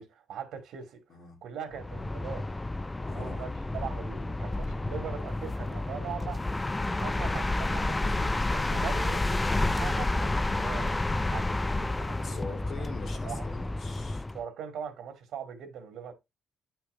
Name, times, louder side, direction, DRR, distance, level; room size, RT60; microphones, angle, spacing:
voice 1, 0.0-1.0 1.4-2.4 3.0-6.4 7.0-9.2 9.8-12.4 12.8-12.9 13.2-13.4 14.3-16.1, right 8 dB, 75° right, 2.6 m, -41 dB
sound 1, 1.7-14.4, left 2 dB, 15° left, 0.4 m, -30 dB
voice 2, 3.0-3.5 8.0-8.7 12.2-14.3, left 4 dB, 60° left, 2.4 m, -43 dB
9.3 x 5.9 x 2.7 m
cardioid pair, 90°, 0 cm